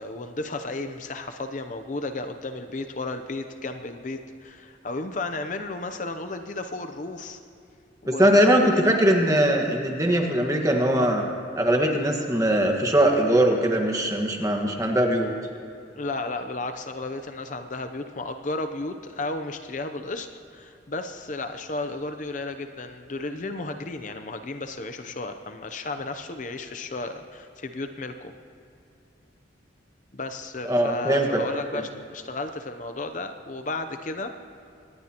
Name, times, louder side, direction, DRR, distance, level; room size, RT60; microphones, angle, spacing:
voice 1, 0.0-7.4 8.0-8.7 16.0-28.3 30.1-34.3, left 2 dB, 40° left, 7 dB, 0.6 m, -33 dB
voice 2, 8.1-11.2 11.6-15.3 30.7-31.4, right 1 dB, 15° right, 2 dB, 1.5 m, -21 dB
24.5 x 19.5 x 3.0 m, 2.7 s
head